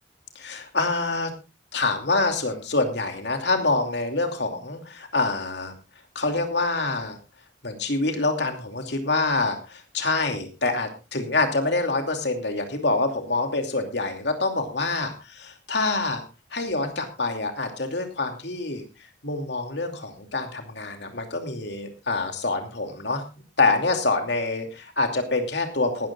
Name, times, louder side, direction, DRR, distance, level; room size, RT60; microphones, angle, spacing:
voice 1, 0.3-1.3 1.7-5.7 6.1-7.2 7.6-15.1 15.4-16.2 16.5-18.8 19.2-23.2 23.6-26.1, left 3 dB, 70° left, 5 dB, 2.6 m, -26 dB
18.5 x 13.5 x 2.4 m, 0.28 s
head